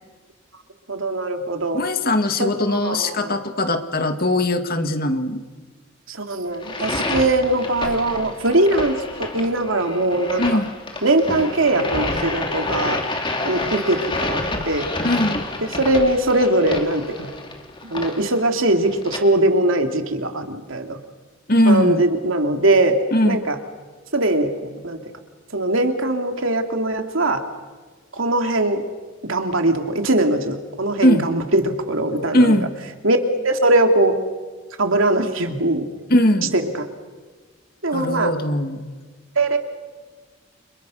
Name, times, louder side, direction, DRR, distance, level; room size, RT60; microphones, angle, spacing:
voice 1, 0.9-1.8 2.4-3.3 6.1-10.4 11.0-13.0 13.4-14.9 15.6-17.3 17.8-21.0 21.6-23.0 23.2-23.6 24.1-25.0 25.5-27.4 28.1-28.8 29.3-32.6 33.0-33.2 33.4-34.2 34.8-35.9 36.5-36.8 37.8-38.3 39.3-39.6, right 2 dB, 75° right, 5 dB, 2.9 m, -21 dB
voice 2, 1.7-5.4 10.4-10.7 15.0-15.4 21.5-22.0 23.1-23.4 31.0-31.3 32.3-32.7 36.1-36.5 37.9-38.9, left 1 dB, 45° left, 7 dB, 2.2 m, -19 dB
sound 1, 6.5-19.2, left 2 dB, 25° left, 2.6 m, -28 dB
29.5 x 27.5 x 6.5 m, 1.4 s
head